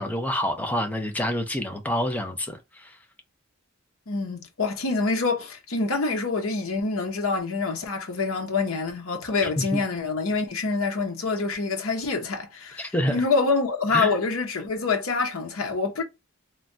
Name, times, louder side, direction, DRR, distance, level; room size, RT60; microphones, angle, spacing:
voice 1, 0.0-3.0 9.7-9.8 12.8-13.2 13.9-14.2, left 1 dB, 10° left, 0.5 m, -27 dB
voice 2, 4.1-16.0, left 4 dB, 85° left, 0.8 m, -26 dB
3.2 x 2.2 x 2.6 m
head